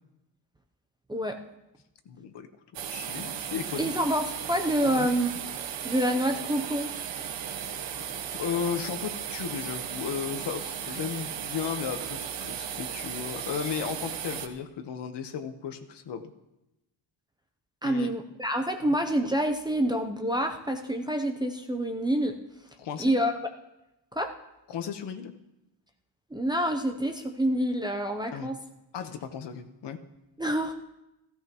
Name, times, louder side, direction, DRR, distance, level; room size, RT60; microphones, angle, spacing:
voice 1, 1.1-1.4 3.8-5.3 5.8-6.9 17.8-22.4 23.0-23.3 24.1-24.3 26.3-28.6 30.4-30.7, right 1 dB, 10° right, 4 dB, 0.6 m, -27 dB
voice 2, 2.0-2.5 2.9-3.9 4.8-5.1 8.3-16.2 17.8-18.1 18.8-19.0 22.8-23.1 24.7-25.3 28.3-28.5 28.9-30.0, left 7 dB, 60° left, 8 dB, 1.2 m, -35 dB
sound 1, 2.7-14.5, right 8 dB, 65° right, 1.1 m, -36 dB
16.0 x 15.5 x 3.0 m, 0.92 s
cardioid pair, 165°, 47 cm